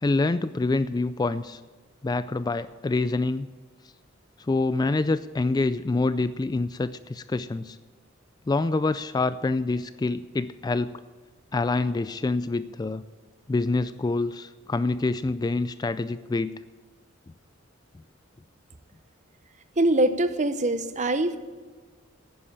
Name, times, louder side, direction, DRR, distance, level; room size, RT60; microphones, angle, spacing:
voice 1, 0.0-1.6 2.0-3.5 4.4-7.8 8.5-10.9 11.5-13.0 13.5-16.5, left 3 dB, 20° left, 14 dB, 0.3 m, -26 dB
voice 2, 19.8-21.4, right 1 dB, 35° right, 11 dB, 0.9 m, -23 dB
11.0 x 9.9 x 8.6 m, 1.4 s
head